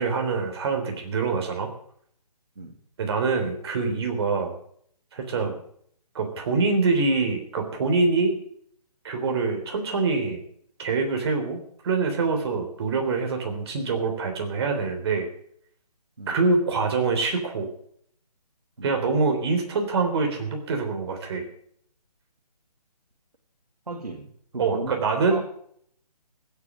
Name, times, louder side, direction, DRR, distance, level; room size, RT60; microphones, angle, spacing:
voice 1, 0.0-1.7 3.0-4.5 5.1-5.5 6.1-8.3 9.0-10.4 10.8-15.3 16.3-17.7 18.8-21.4 24.6-25.4, right 4 dB, 40° right, 4 dB, 3.6 m, -25 dB
voice 2, 23.9-24.3 24.5-25.0 25.3-25.4, right 3 dB, 75° right, 1 dB, 2.6 m, -36 dB
16.0 x 8.4 x 7.4 m, 0.65 s
figure-of-eight pair, 150°, 21 cm